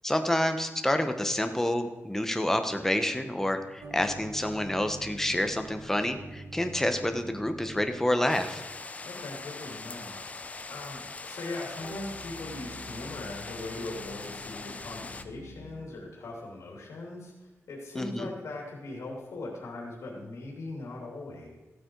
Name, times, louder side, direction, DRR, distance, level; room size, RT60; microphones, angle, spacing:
voice 1, 0.0-8.6 17.9-18.3, left 1 dB, 10° left, 7 dB, 1.0 m, -28 dB
sound 1, 3.8-8.2 11.8-16.0, right 1 dB, 90° right, 2.5 m, -46 dB
sound 2, 8.3-15.2, left 3 dB, 30° left, 0.6 m, -42 dB
voice 2, 9.0-10.2 10.7-21.6, left 2 dB, 80° left, -2 dB, 2.8 m, -40 dB
15.5 x 8.6 x 4.6 m, 1.1 s
wide cardioid pair, 130°, 5 cm